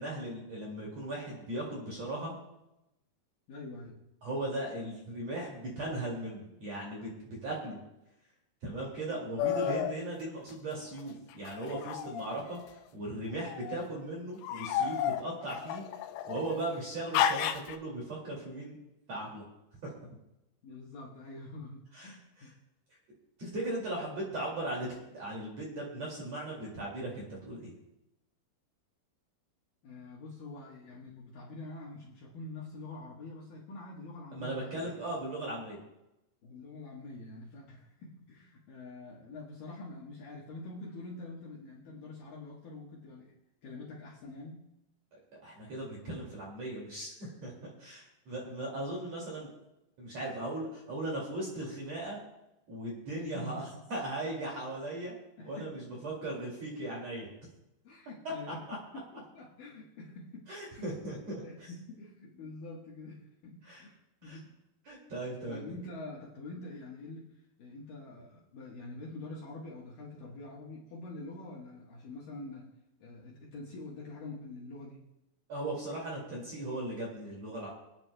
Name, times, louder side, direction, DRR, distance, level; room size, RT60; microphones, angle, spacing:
voice 1, 0.0-2.3 4.2-7.8 8.6-12.6 12.9-15.8 16.3-18.8 19.1-19.4 19.8-19.9 21.9-22.5 23.4-27.7 34.3-35.8 45.4-49.5 50.0-52.2 52.7-53.6 53.9-55.2 55.4-57.3 58.7-58.8 60.5-61.7 63.6-63.8 64.2-64.4 64.9-65.7 75.5-77.7, right 1 dB, 45° right, -3 dB, 2.9 m, -38 dB
voice 2, 3.5-4.0 13.6-13.9 20.6-22.5 29.8-35.0 36.4-43.4 43.6-44.7 53.1-53.8 55.4-55.9 57.8-61.0 61.4-64.6 65.5-72.7 73.0-75.1, left 2 dB, 65° left, -4 dB, 2.5 m, -46 dB
sound 1, 9.4-9.9 11.5-12.7 13.4-13.8 14.4-16.5 17.1-17.8, left 9 dB, 80° left, 2.8 m, -32 dB
25.5 x 9.2 x 2.2 m, 0.91 s
omnidirectional pair, 5.2 m